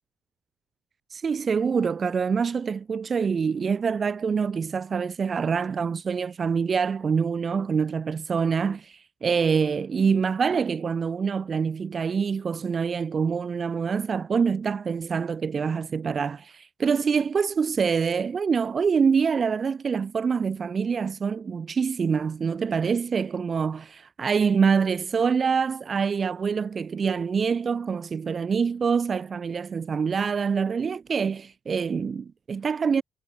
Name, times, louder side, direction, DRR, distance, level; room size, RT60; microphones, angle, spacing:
voice 1, 1.1-33.0, right 6 dB, 40° right, 4.5 m, -25 dB
cardioid pair, 85°, 0 cm